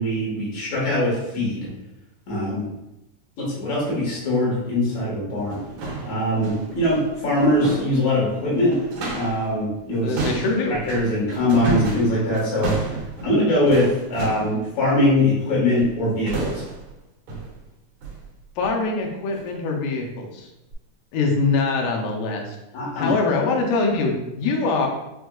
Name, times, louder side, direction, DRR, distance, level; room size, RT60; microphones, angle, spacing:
voice 1, 0.0-1.7 2.3-2.7 3.4-5.6 6.0-8.8 9.2-10.2 10.9-12.7 13.2-16.6 22.7-23.4, left 1 dB, 60° left, -7 dB, 2.6 m, -22 dB
sound 1, 4.6-4.7 5.3-9.5 9.7-14.6 15.8-16.0 16.3-16.9 17.3-17.6 18.0-18.2 18.6-18.8 19.3-19.5 20.0-20.1 20.7-20.8, right 2 dB, 75° right, 2.5 m, -32 dB
voice 2, 10.0-10.8 18.6-20.5 21.1-22.6 23.0-24.9, left 3 dB, 90° left, 1 dB, 2.2 m, -23 dB
6.1 x 2.6 x 2.3 m, 0.93 s
omnidirectional pair, 3.5 m